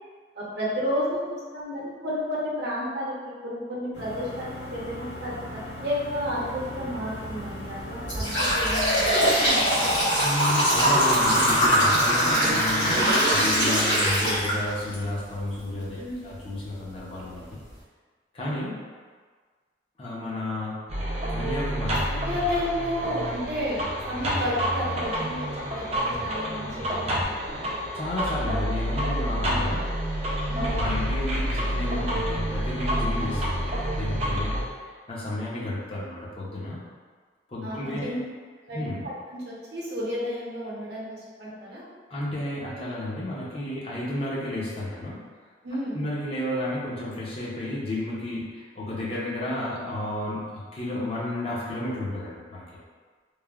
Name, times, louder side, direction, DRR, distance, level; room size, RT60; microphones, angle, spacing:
voice 1, 0.3-9.3 15.9-16.2 22.1-25.5 25.7-27.7 30.4-30.8 37.6-38.2 38.7-41.8 45.6-46.0, equal, 65° right, -6 dB, 0.7 m, -32 dB
sound 1, 3.9-10.1, equal, 65° left, 1.5 m, -38 dB
sound 2, 7.1-7.3 7.8-14.9 15.4-15.5 16.4-16.5 17.0-17.1 17.5-17.7, equal, 85° left, 1.2 m, -22 dB
voice 2, 10.2-17.6 18.3-18.8 20.0-20.8 21.3-22.0 27.9-29.8 30.7-36.8 37.5-38.1 38.7-39.0 42.1-45.2 45.9-52.6, left 1 dB, 30° left, -7 dB, 0.6 m, -32 dB
sound 3, 20.9-34.6, equal, 35° right, 0.4 m, -28 dB
3.1 x 2.0 x 2.3 m, 1.5 s
head